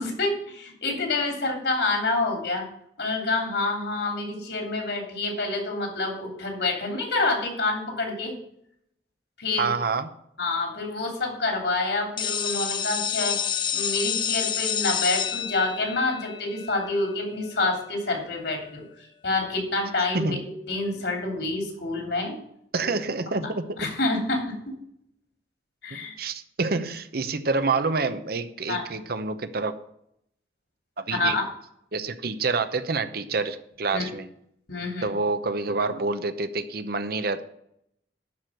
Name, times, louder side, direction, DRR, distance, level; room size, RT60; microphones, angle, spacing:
voice 1, 0.0-2.6 3.0-8.4 9.4-9.7 10.4-13.4 13.7-20.3 20.7-22.4 23.3-23.5 23.8-24.7 25.8-26.1 28.7-28.8 31.1-31.4 33.9-34.0 34.7-35.1, left 2 dB, 70° left, 2 dB, 3.0 m, -27 dB
voice 2, 9.6-10.1 20.1-20.4 22.7-23.9 25.9-29.8 31.0-31.4 31.9-34.3 35.0-37.4, right 3 dB, 60° right, 11 dB, 0.9 m, -27 dB
sound 1, 12.2-17.8, left 8 dB, 25° left, 0.3 m, -29 dB
11.0 x 4.9 x 7.8 m, 0.73 s
head